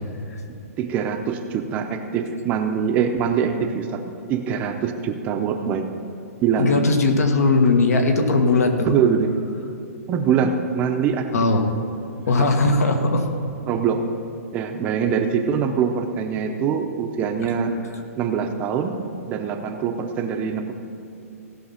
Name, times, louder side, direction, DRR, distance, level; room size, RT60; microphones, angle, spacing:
voice 1, 0.5-4.0 4.3-5.9 6.4-6.8 8.9-9.3 10.1-11.3 12.4-12.5 13.7-14.0 14.5-17.8 18.2-19.0 19.3-20.7, right 7 dB, 20° right, 6 dB, 0.6 m, -23 dB
voice 2, 6.6-8.9 11.3-11.6 12.3-13.2, left 3 dB, 85° left, 4 dB, 1.7 m, -19 dB
17.0 x 5.8 x 5.7 m, 2.9 s
hypercardioid pair, 165°, 8 cm